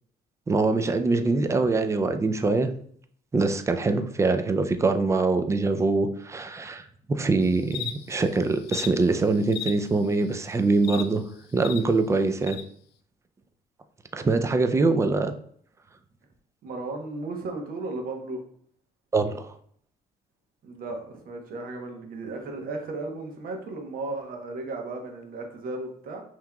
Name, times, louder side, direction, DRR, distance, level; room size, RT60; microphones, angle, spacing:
voice 1, 0.5-2.7 3.3-11.2 11.5-12.6 14.1-15.3 19.1-19.5, right 3 dB, 15° right, 8 dB, 0.4 m, -24 dB
sound 1, 7.4-11.8 12.4-12.6, left 11 dB, 75° left, 0.4 m, -38 dB
voice 2, 16.6-18.4 20.6-26.2, right 2 dB, 60° right, 3 dB, 1.0 m, -35 dB
5.7 x 2.9 x 2.3 m, 0.62 s
cardioid pair, 110°, 17 cm